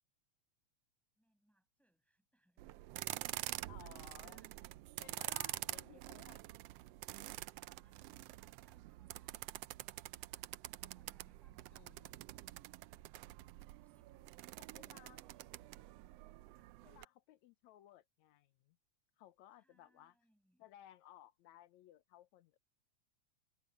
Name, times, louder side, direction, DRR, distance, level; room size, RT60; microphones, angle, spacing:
voice 1, 1.2-2.8 3.1-4.5 4.8-6.0 7.1-12.4 13.6-15.8 16.4-16.8 19.6-20.7, right 1 dB, ahead, 6.4 m, -76 dB
sound 1, 2.6-17.0, right 17 dB, 85° right, 1.4 m, -47 dB
voice 2, 3.7-4.5 5.0-6.4 10.8-10.9 11.7-12.5 14.6-15.2 16.8-18.8 19.2-20.2 20.6-22.6, left 13 dB, 75° left, 2.2 m, -60 dB
omnidirectional pair, 3.4 m